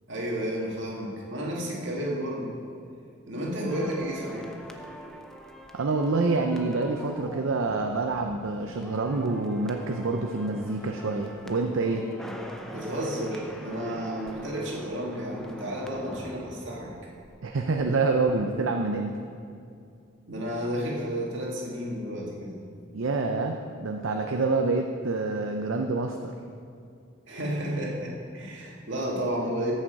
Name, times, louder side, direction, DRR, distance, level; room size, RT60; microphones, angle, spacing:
voice 1, 0.1-2.6 3.3-4.5 12.7-16.9 20.3-22.6 27.3-29.7, equal, 65° right, -3 dB, 2.1 m, -32 dB
sound 1, 3.7-17.9 18.1-18.3, equal, 5° left, 0.5 m, -43 dB
voice 2, 5.7-12.1 17.4-19.2 22.9-26.3, right 3 dB, 80° right, 3 dB, 0.6 m, -27 dB
14.0 x 6.5 x 4.7 m, 2.4 s
head